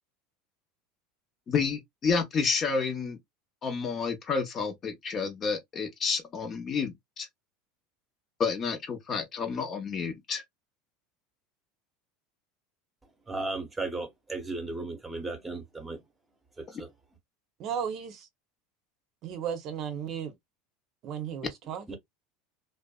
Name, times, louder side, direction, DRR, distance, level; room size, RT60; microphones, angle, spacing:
voice 1, 1.5-3.2 3.6-7.3 8.4-10.4, left 5 dB, 35° left, 0.7 m, -30 dB
voice 2, 13.3-16.0 16.6-16.9 21.9-22.0, right 3 dB, 10° right, 0.9 m, -35 dB
voice 3, 17.6-18.3 19.2-20.3 21.0-22.0, right 8 dB, 50° right, 0.7 m, -35 dB
2.5 x 2.1 x 2.2 m
supercardioid pair, 115°, 0 cm